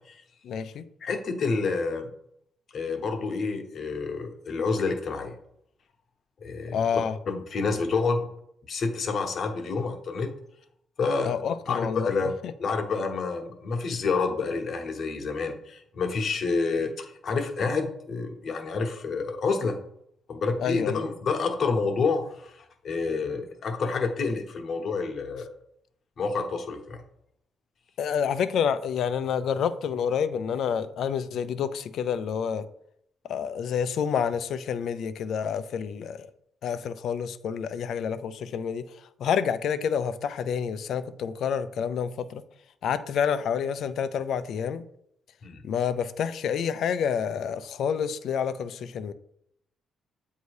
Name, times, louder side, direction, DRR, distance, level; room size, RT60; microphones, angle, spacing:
voice 1, 0.4-0.8 6.7-7.1 11.2-12.1 20.6-21.0 28.0-32.6 33.3-36.3 36.6-38.9 39.2-42.4 42.8-44.8 45.6-49.1, left 7 dB, 70° left, 0.4 m, -28 dB
voice 2, 1.0-2.1 2.7-5.3 6.4-7.0 7.3-8.3 8.7-10.3 11.0-11.4 11.7-19.8 20.3-25.5 26.2-27.0 45.4-45.6, left 4 dB, 55° left, 1.0 m, -28 dB
8.0 x 2.7 x 4.8 m
cardioid pair, 90°, 0 cm